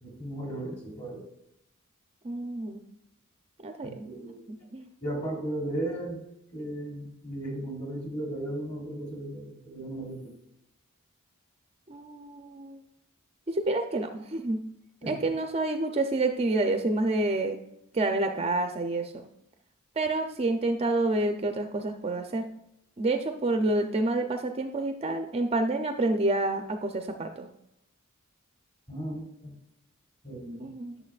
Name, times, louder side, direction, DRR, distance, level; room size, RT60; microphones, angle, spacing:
voice 1, 0.0-1.3 3.8-4.4 5.0-6.2 6.5-10.3 15.0-15.1 28.9-29.5 30.2-30.7, right 1 dB, 30° left, -1 dB, 3.0 m, -36 dB
voice 2, 2.2-2.8 3.6-4.1 4.7-4.9 11.9-12.8 13.5-14.6 15.1-17.6 17.9-19.3 20.0-22.5 23.0-27.5 30.6-30.9, right 2 dB, 30° right, 5 dB, 0.5 m, -28 dB
11.0 x 6.7 x 2.4 m, 0.81 s
head